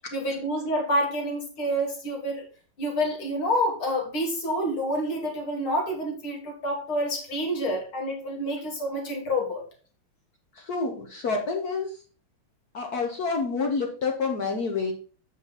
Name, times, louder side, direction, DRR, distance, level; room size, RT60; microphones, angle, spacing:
voice 1, 0.1-2.4 2.8-9.6, equal, 80° left, 0 dB, 3.0 m, -28 dB
voice 2, 10.5-12.0 12.7-14.9, left 4 dB, 55° left, 2 dB, 1.3 m, -28 dB
7.5 x 5.5 x 4.1 m, 0.38 s
omnidirectional pair, 2.3 m